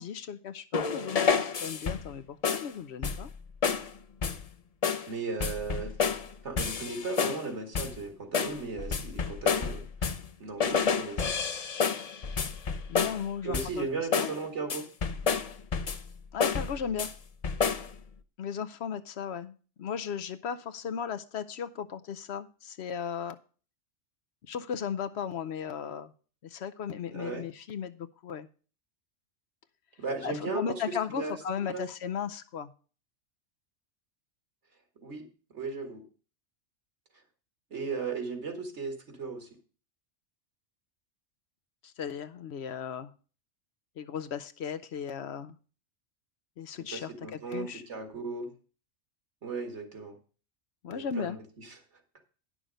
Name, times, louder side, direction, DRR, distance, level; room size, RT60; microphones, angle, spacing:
voice 1, 0.0-3.3 12.9-13.9 14.2-14.3 16.3-17.1 18.4-23.4 24.5-26.1 26.4-28.5 30.2-32.7 41.8-43.1 44.0-45.5 46.6-47.8 50.8-51.4, left 7 dB, 65° left, 10 dB, 0.9 m, -36 dB
sound 1, 0.7-2.1 2.4-2.7 3.0-3.4 3.6-3.9 4.2-4.5 4.8-5.1 5.4-6.3 6.6-7.5 7.7-8.0 8.3-10.3 10.6-13.3 13.5-13.8 14.1-14.4 14.7-16.1 16.4-17.1 17.4-17.9, left 6 dB, 40° left, 0.6 m, -29 dB
voice 2, 5.1-5.9 6.4-9.9 10.4-11.4 13.4-14.9 27.1-27.5 30.0-31.4 31.7-31.8 35.0-35.3 35.5-36.0 37.7-39.5 46.8-48.5 49.4-50.2 50.9-51.8, right 4 dB, 70° right, 5 dB, 2.1 m, -36 dB
10.0 x 6.3 x 5.2 m, 0.38 s
omnidirectional pair, 1.2 m